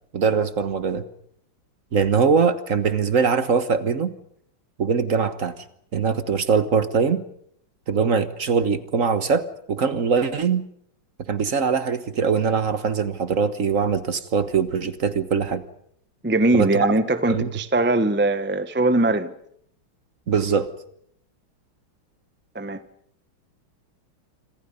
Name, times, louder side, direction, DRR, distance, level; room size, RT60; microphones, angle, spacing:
voice 1, 0.1-1.0 1.9-4.1 4.8-5.5 5.9-7.2 7.9-10.7 11.3-15.6 16.5-16.9 17.3-17.5 20.3-20.7, right 5 dB, 45° right, 1.4 m, -22 dB
voice 2, 16.2-19.3 22.5-22.8, right 2 dB, 15° right, 0.4 m, -21 dB
27.0 x 26.0 x 5.4 m
omnidirectional pair, 2.3 m